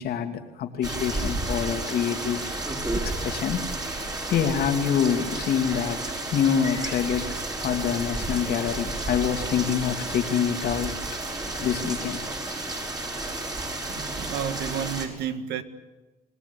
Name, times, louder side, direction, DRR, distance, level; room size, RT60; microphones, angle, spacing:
voice 1, 0.0-2.4 3.0-3.7 4.3-6.0 6.3-7.3 7.6-10.9 11.5-12.2, left 8 dB, 65° left, 6 dB, 2.8 m, -26 dB
sound 1, 0.8-15.1, right 2 dB, 20° right, 6.0 m, -32 dB
voice 2, 13.9-15.6, right 8 dB, 80° right, 9 dB, 1.9 m, -31 dB
28.0 x 19.5 x 8.5 m, 1.2 s
cardioid pair, 110°, 17 cm